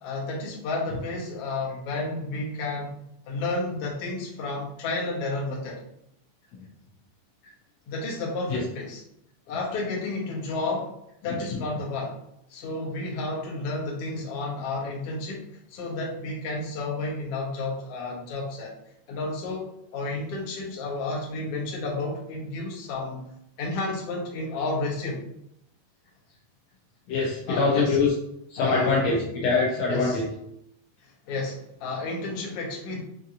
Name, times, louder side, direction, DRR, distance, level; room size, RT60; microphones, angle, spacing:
voice 1, 0.0-3.0 3.3-5.8 7.9-9.0 9.5-10.9 11.2-12.2 12.5-18.7 19.1-23.3 23.6-25.2 27.5-28.0 28.6-28.9 29.8-30.2 31.3-33.0, left 2 dB, 65° left, -2 dB, 1.5 m, -31 dB
voice 2, 27.1-28.1 28.5-30.3, left 4 dB, 80° left, -4 dB, 1.5 m, -23 dB
5.7 x 2.8 x 2.5 m, 0.77 s
omnidirectional pair, 3.8 m